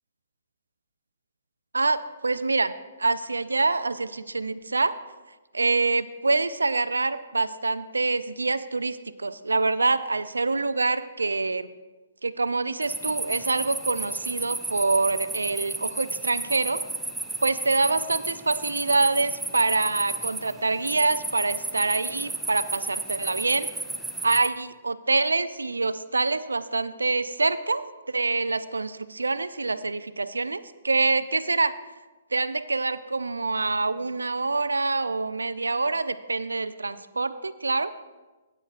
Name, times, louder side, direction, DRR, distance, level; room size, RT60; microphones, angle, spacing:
voice 1, 1.7-2.7 3.0-4.9 5.5-11.7 12.2-16.8 17.4-23.7 24.2-31.7 32.3-37.9, right 3 dB, 80° right, 14 dB, 0.4 m, -26 dB
sound 1, 12.8-24.5, right 2 dB, 5° right, 0.6 m, -33 dB
15.0 x 8.8 x 2.5 m, 1.2 s
figure-of-eight pair, 125°, 0 cm